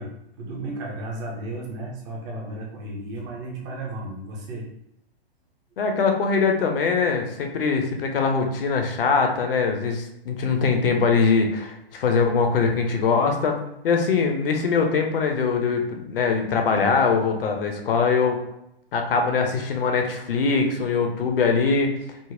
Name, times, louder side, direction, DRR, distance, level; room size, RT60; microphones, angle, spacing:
voice 1, 0.0-4.7, right 2 dB, 15° right, -1 dB, 0.4 m, -34 dB
voice 2, 5.8-13.6 13.8-18.4 18.9-21.9, left 5 dB, 60° left, 3 dB, 0.7 m, -22 dB
3.8 x 2.0 x 2.5 m, 0.84 s
figure-of-eight pair, 120°, 31 cm